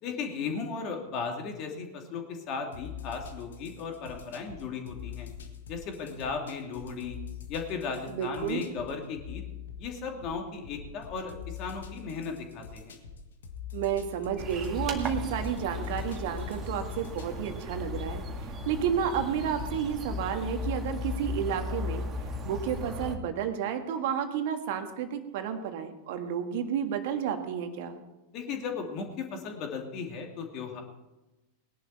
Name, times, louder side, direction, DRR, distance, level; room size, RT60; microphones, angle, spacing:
voice 1, 0.0-5.3 5.7-7.2 7.5-9.4 9.8-13.0 28.3-30.8, left 5 dB, 40° left, 2 dB, 2.7 m, -36 dB
sound 1, 2.7-19.9, left 8 dB, 65° left, 1.6 m, -45 dB
voice 2, 8.1-8.6 13.7-22.0 22.4-28.0, right 8 dB, 50° right, 7 dB, 1.7 m, -31 dB
sound 2, 14.4-23.2, left 2 dB, 25° right, 1.9 m, -36 dB
20.0 x 11.0 x 4.4 m, 1.0 s
figure-of-eight pair, 90°, 0 cm